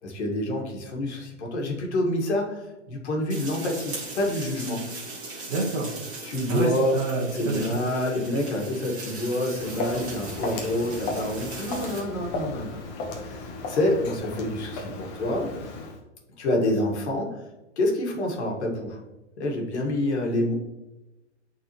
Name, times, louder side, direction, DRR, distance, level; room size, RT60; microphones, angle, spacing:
voice 1, 0.0-4.9 6.2-6.9 7.3-12.8 13.2-15.5 16.4-17.4 17.8-19.0 19.4-20.5, left 1 dB, 70° left, 1 dB, 1.8 m, -27 dB
sound 1, 3.3-12.0, right 3 dB, 20° right, 2.1 m, -39 dB
voice 2, 5.5-5.9 6.5-7.6, right 3 dB, 45° right, -3 dB, 1.3 m, -27 dB
Walk footsteps, 9.4-16.0, left 3 dB, 25° left, 1.0 m, -35 dB
8.3 x 4.1 x 3.0 m, 1.0 s
hypercardioid pair, 150°, 35 cm